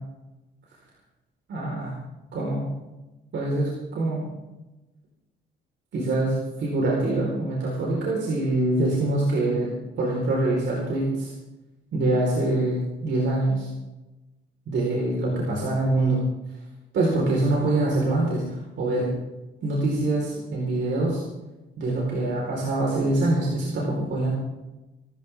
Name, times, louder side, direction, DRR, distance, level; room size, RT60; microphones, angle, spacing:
voice 1, 1.5-1.9 2.3-2.7 3.3-4.3 5.9-9.7 10.0-11.3 11.9-13.7 14.7-16.2 16.9-19.1 19.6-21.2 21.8-24.3, right 2 dB, 65° right, -3 dB, 4.6 m, -24 dB
23.0 x 13.5 x 3.7 m, 1.0 s
cardioid pair, 90°, 20 cm